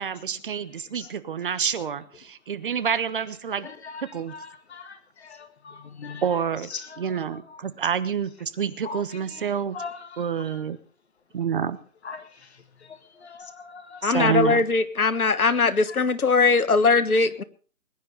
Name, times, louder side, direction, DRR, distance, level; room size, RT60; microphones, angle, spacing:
voice 1, 0.0-3.7 4.1-4.3 6.2-6.7 7.0-9.8 10.2-10.8 11.3-11.8 14.0-14.6, right 7 dB, 35° right, 1.2 m, -28 dB
voice 2, 3.6-6.4 6.7-7.6 8.8-10.7 12.0-14.4 15.4-16.0 16.4-16.5 16.8-16.9, left 5 dB, 50° left, 1.9 m, -42 dB
voice 3, 14.0-17.4, left 4 dB, 85° left, 1.6 m, -20 dB
21.0 x 10.0 x 5.3 m
figure-of-eight pair, 155°, 43 cm